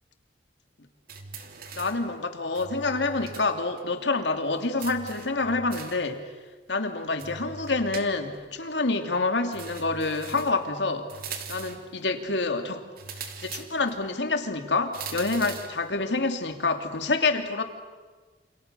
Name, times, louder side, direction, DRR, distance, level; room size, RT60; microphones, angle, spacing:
sound 1, 1.1-2.1 2.5-3.5 3.8-3.9 4.8-6.1 7.2-8.5 9.5-10.6 11.1-11.9 13.0-14.0 14.9-15.8, right 5 dB, 55° right, 2.8 m, -41 dB
voice 1, 1.7-6.2 6.7-11.1 11.5-12.9 13.4-17.6, left 3 dB, 85° left, 6 dB, 2.8 m, -27 dB
28.5 x 28.5 x 6.9 m, 1.4 s
head